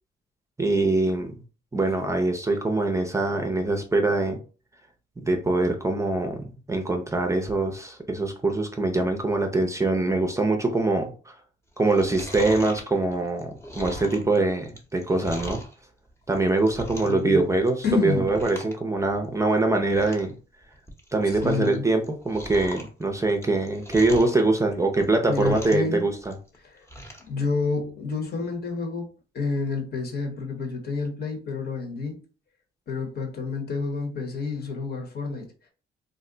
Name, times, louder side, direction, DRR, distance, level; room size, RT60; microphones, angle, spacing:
voice 1, 0.6-1.3 1.7-4.4 5.2-6.4 6.7-11.3 11.8-15.6 16.3-20.3 21.1-26.1, right 2 dB, 15° right, 0.5 m, -23 dB
Chewing mastication, 11.8-15.7 16.2-17.3 17.5-17.9 18.2-18.8 19.0-19.1 19.6-19.7 19.9-20.3 20.7-21.8 22.0-24.4 24.9-25.9 26.2-27.3 27.7-27.8, equal, 15° left, 0.8 m, -39 dB
voice 2, 17.0-17.4 17.8-18.3 21.4-21.8 25.3-26.0 26.6-26.8 27.3-29.1 29.3-32.2 32.9-35.5, left 4 dB, 55° left, 1.1 m, -29 dB
2.5 x 2.1 x 3.8 m
cardioid pair, 90°, 20 cm